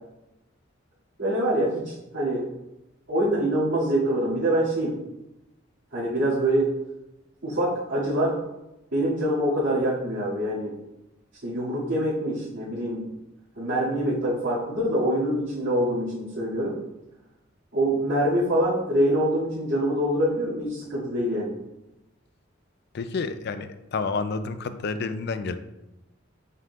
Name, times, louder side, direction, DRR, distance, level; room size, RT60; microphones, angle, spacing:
voice 1, 1.2-2.4 3.1-4.9 5.9-6.7 7.4-8.4 8.9-10.7 11.4-13.0 13.6-16.8 17.7-21.5, right 1 dB, 80° right, -13 dB, 2.3 m, -25 dB
voice 2, 22.9-25.6, left 4 dB, 55° left, 11 dB, 0.4 m, -29 dB
7.4 x 5.5 x 2.4 m, 0.95 s
head